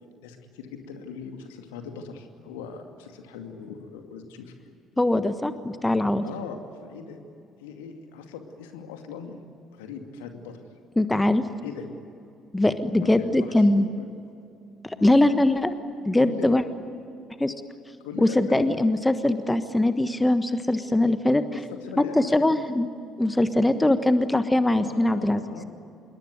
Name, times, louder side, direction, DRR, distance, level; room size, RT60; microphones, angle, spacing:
voice 1, 0.2-4.5 6.2-7.2 7.6-9.4 9.7-10.6 11.6-11.9 13.0-14.1 14.9-15.3 16.2-16.5 18.0-18.7 21.5-22.6 24.7-25.7, left 6 dB, 70° left, 5 dB, 2.4 m, -39 dB
voice 2, 5.0-6.2 11.0-11.4 12.5-13.9 14.8-15.7 16.0-16.6 17.4-17.5 18.2-21.4 22.1-22.9 23.2-25.4, left 1 dB, 10° left, 11 dB, 1.4 m, -21 dB
27.0 x 22.5 x 9.5 m, 2.6 s
figure-of-eight pair, 50°, 0 cm